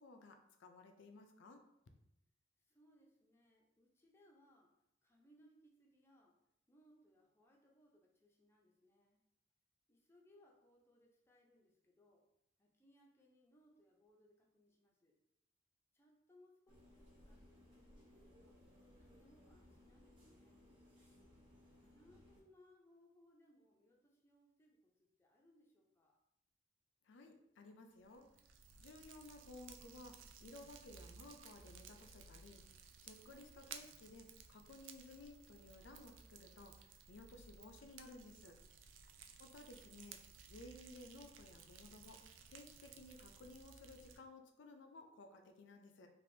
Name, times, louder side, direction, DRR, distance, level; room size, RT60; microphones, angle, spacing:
voice 1, 0.0-1.6 27.0-28.3 28.8-32.6 33.0-36.8 37.1-38.6 39.4-40.2 40.5-42.2 42.5-46.1, left 2 dB, 70° left, 5 dB, 0.4 m, -57 dB
voice 2, 2.6-4.7 5.0-6.4 6.7-9.2 9.9-12.3 12.6-15.2 15.9-18.7 19.0-20.7 21.7-26.2, left 1 dB, 15° left, -2 dB, 0.5 m, -70 dB
sound 1, 16.7-22.4, left 1 dB, 70° right, 1.0 m, -64 dB
Fire, 28.0-44.2, right 6 dB, 85° right, 0.3 m, -58 dB
3.3 x 2.5 x 2.6 m, 0.81 s
head